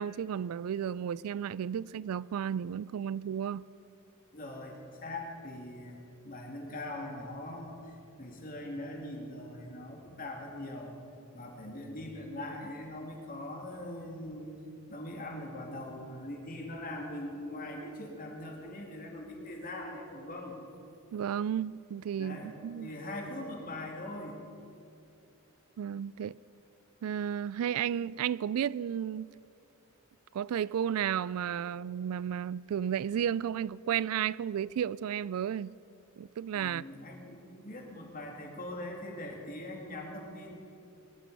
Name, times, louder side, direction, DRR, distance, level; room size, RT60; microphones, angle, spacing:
voice 1, 0.0-3.7 21.1-22.9 25.8-26.3 27.0-29.3 30.3-35.7 36.2-36.8, right 9 dB, 80° right, 0.3 m, -33 dB
voice 2, 4.3-4.8 5.0-6.0 6.2-10.9 11.3-14.5 14.9-20.6 22.2-24.4 36.5-40.5, left 1 dB, 40° left, 2.6 m, -41 dB
21.5 x 11.5 x 5.5 m
head